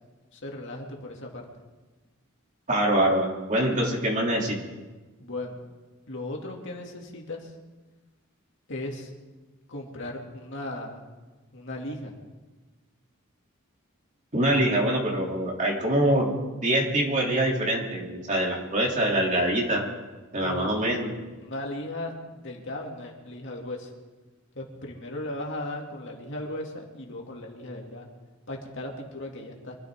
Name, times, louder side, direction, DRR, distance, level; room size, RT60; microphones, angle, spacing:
voice 1, 0.3-1.5 5.2-5.5 6.1-7.5 8.7-9.1 9.7-11.0 11.5-12.1 20.4-21.1 21.4-22.1 22.4-23.9 24.5-28.1 28.5-29.8, left 1 dB, 60° left, 0 dB, 2.6 m, -36 dB
voice 2, 2.7-4.6 14.3-16.3 16.6-19.9 20.3-21.1, right 1 dB, 35° right, -1 dB, 3.0 m, -24 dB
25.5 x 14.0 x 3.8 m, 1.2 s
head